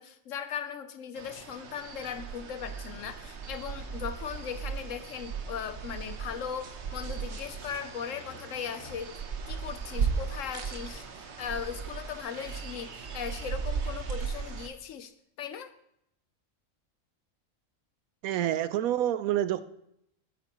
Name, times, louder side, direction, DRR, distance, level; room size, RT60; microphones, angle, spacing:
voice 1, 0.0-9.2 9.5-15.1 15.4-15.7, left 8 dB, 70° left, 11 dB, 1.0 m, -38 dB
sound 1, 1.2-14.7, right 6 dB, 55° right, 1.1 m, -37 dB
sound 2, 2.9-3.2 3.4-9.1, left 4 dB, 50° left, 1.7 m, -57 dB
voice 2, 18.2-19.6, right 12 dB, 90° right, 14 dB, 1.0 m, -27 dB
12.0 x 9.5 x 3.0 m, 0.76 s
omnidirectional pair, 1.5 m